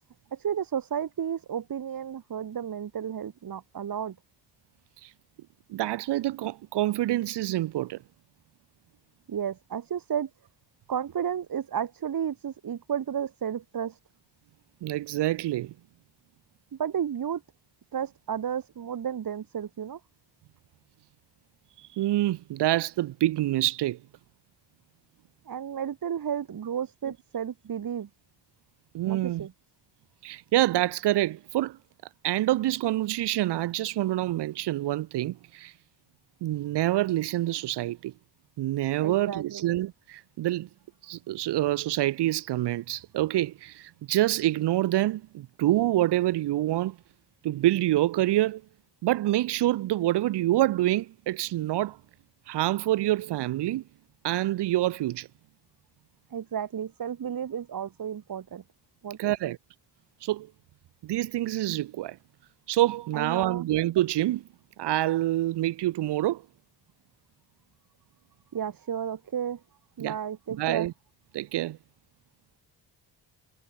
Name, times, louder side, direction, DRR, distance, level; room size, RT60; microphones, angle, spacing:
voice 1, 0.3-4.2 9.3-10.3 10.9-14.0 16.7-17.4 17.9-20.0 25.5-28.1 29.0-29.5 39.0-39.7 56.3-58.6 59.0-59.5 63.1-63.6 68.5-69.6 70.0-70.9, right 8 dB, 60° right, 2.7 m, -32 dB
voice 2, 5.7-8.0 14.8-15.7 21.8-24.0 27.1-27.2 28.9-29.5 30.2-31.8 32.2-35.7 36.4-38.1 38.6-40.7 41.0-47.0 47.4-48.6 49.0-52.0 52.5-53.8 54.2-55.3 59.2-59.6 60.2-60.5 61.0-62.2 62.7-64.5 64.8-66.5 70.0-70.2 70.6-70.9 71.3-71.8, right 15 dB, 85° right, 0.7 m, -26 dB
cardioid pair, 115°, 40 cm